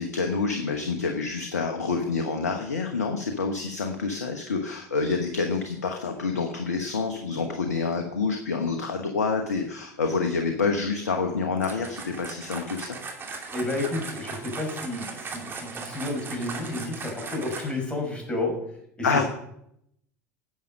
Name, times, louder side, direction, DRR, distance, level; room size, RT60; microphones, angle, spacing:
voice 1, 0.0-12.9 19.0-19.2, left 4 dB, 75° left, 5 dB, 1.1 m, -27 dB
sound 1, 11.6-17.9, right 4 dB, 25° right, 2.5 m, -38 dB
voice 2, 13.5-18.5 19.0-19.2, left 2 dB, 10° left, 0 dB, 5.5 m, -31 dB
11.0 x 7.6 x 6.5 m, 0.75 s
figure-of-eight pair, 75°, 9 cm